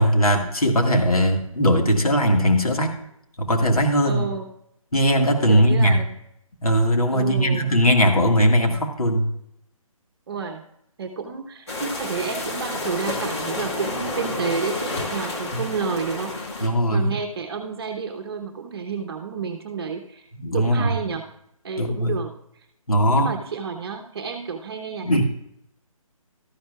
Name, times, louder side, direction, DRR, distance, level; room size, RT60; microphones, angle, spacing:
voice 1, 0.0-3.0 3.4-4.3 4.9-6.0 6.6-9.3 15.5-15.6 16.6-17.1 20.4-20.9 21.8-22.2 22.9-23.3 25.0-25.2, equal, 85° left, 3 dB, 1.8 m, -19 dB
voice 2, 4.0-4.5 5.5-6.1 7.1-7.7 10.3-10.6 11.0-16.4 16.9-21.3 21.6-22.3 23.2-25.2, right 5 dB, 45° right, 5 dB, 0.9 m, -30 dB
sound 1, 11.7-16.7, left 2 dB, 50° left, 2.0 m, -30 dB
13.0 x 10.5 x 2.3 m, 0.75 s
figure-of-eight pair, 145°, 18 cm